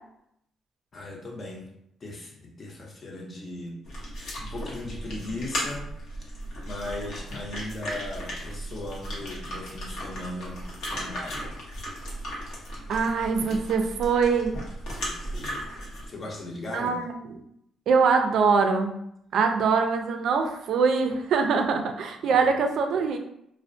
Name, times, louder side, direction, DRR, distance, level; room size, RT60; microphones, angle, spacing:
voice 1, 0.9-1.7 2.0-3.8 4.1-5.9 6.2-11.5 15.0-15.7 16.1-17.1 22.2-22.5, left 2 dB, 40° left, -1 dB, 0.6 m, -38 dB
sound 1, 3.8-16.1, equal, 80° left, 0.8 m, -36 dB
voice 2, 12.9-14.5 16.7-17.2 17.9-18.9 19.3-23.2, right 5 dB, 70° right, 5 dB, 0.3 m, -23 dB
2.4 x 2.1 x 2.5 m, 0.74 s
cardioid pair, 90°, 0 cm